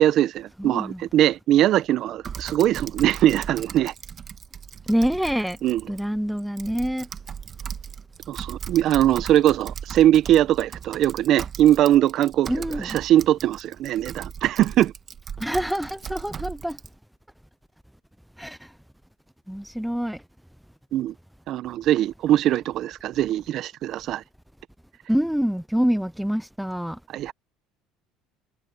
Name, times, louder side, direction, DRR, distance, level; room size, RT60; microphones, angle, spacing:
voice 1, 0.0-3.9 5.6-5.8 8.3-12.5 12.8-14.9 20.9-21.1 21.5-24.2 27.1-27.3, right 12 dB, 55° right, 0.9 m, -21 dB
voice 2, 0.6-1.0 4.9-5.6 5.9-7.1 12.5-13.0 15.4-16.8 18.4-18.7 19.5-20.2 25.1-27.0, equal, ahead, 0.4 m, -26 dB
Typing, 2.2-16.9, right 7 dB, 40° right, 1.5 m, -38 dB
supercardioid pair, 100°, 0 cm